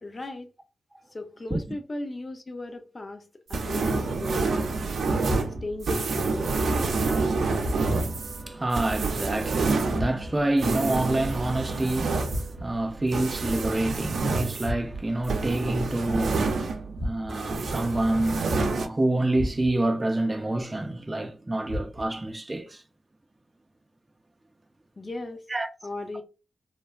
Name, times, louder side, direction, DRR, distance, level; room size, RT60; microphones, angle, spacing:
voice 1, 0.0-0.5 1.1-5.0 5.6-6.9 25.0-25.5 25.8-26.2, left 2 dB, 40° left, 0.6 m, -37 dB
sound 1, 3.5-17.0 17.3-18.9, right 3 dB, 80° right, 0.5 m, -28 dB
sound 2, 5.2-5.9 7.6-8.2 9.9-10.6 12.3-12.9 14.6-15.2 16.9-17.6 19.3-20.0 21.7-22.3, left 1 dB, 70° left, 1.0 m, -35 dB
voice 2, 7.7-22.8 25.5-25.7, right 1 dB, 25° right, 0.4 m, -28 dB
3.2 x 2.1 x 2.4 m
cardioid pair, 70°, 0 cm